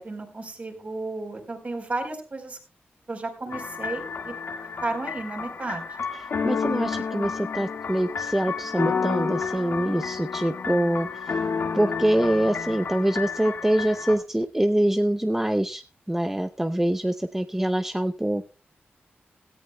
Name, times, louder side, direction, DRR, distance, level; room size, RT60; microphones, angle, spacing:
voice 1, 0.0-2.6 3.1-4.3 4.8-5.9, right 2 dB, 40° right, 3 dB, 4.1 m, -33 dB
sound 1, 3.5-14.2, left 5 dB, 75° left, 1.8 m, -30 dB
voice 2, 6.4-11.4 11.7-18.5, right 1 dB, 10° right, 9 dB, 0.5 m, -24 dB
17.0 x 14.0 x 2.2 m, 0.33 s
wide cardioid pair, 110°, 4 cm